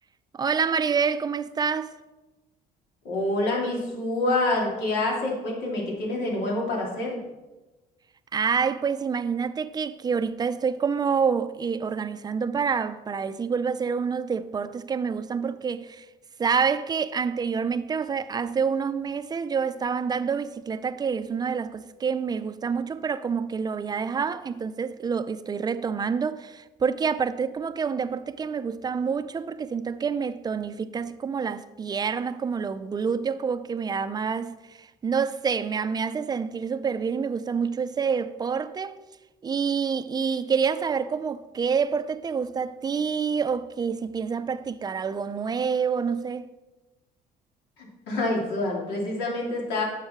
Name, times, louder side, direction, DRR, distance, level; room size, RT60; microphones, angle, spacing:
voice 1, 0.3-2.0 8.3-16.1 16.4-39.0 39.4-46.5, right 6 dB, 25° right, 0.4 m, -27 dB
voice 2, 3.0-7.2 47.8-49.8, left 2 dB, 85° left, 2.9 m, -27 dB
9.5 x 6.7 x 4.4 m
cardioid pair, 110°, 17 cm